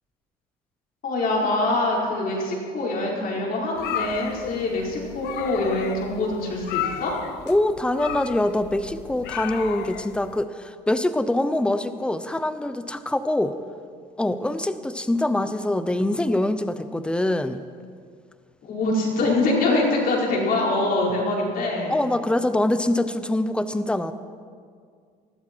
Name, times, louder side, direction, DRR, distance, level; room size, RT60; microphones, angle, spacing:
voice 1, 1.0-7.1 18.6-22.0, left 2 dB, 60° left, -3 dB, 5.0 m, -24 dB
sound 1, 3.8-10.4, left 10 dB, 80° left, 0.8 m, -34 dB
voice 2, 7.5-13.6 14.2-17.6 21.9-24.1, left 1 dB, 5° left, 11 dB, 0.8 m, -24 dB
20.0 x 14.0 x 4.6 m, 2.1 s
cardioid pair, 110°, 17 cm